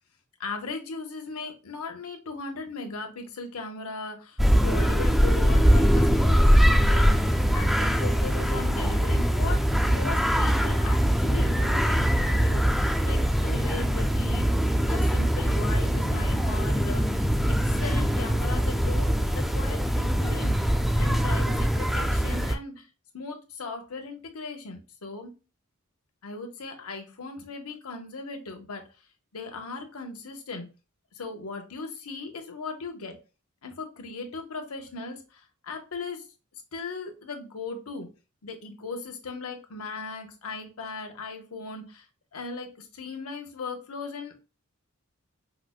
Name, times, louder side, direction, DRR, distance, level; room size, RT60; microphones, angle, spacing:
voice 1, 0.4-14.5 14.9-20.6 21.0-22.9 23.1-25.3 26.2-28.8 29.3-30.7 31.1-33.2 33.6-36.3 36.7-38.1 38.4-42.1 42.3-44.3, left 3 dB, 80° left, 4 dB, 0.9 m, -38 dB
sound 1, 4.4-22.6, equal, ahead, 0.4 m, -22 dB
4.9 x 2.1 x 2.2 m, 0.32 s
head